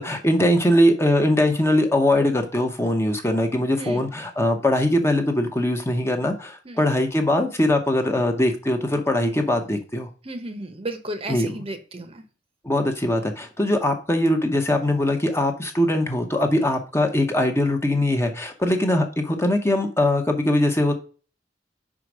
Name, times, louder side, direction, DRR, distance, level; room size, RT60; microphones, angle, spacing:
voice 1, 0.0-10.1 11.3-11.6 12.6-20.9, left 1 dB, 15° left, 4 dB, 0.8 m, -21 dB
voice 2, 10.2-12.2, right 1 dB, 30° right, 8 dB, 0.8 m, -33 dB
5.1 x 4.8 x 6.0 m, 0.38 s
head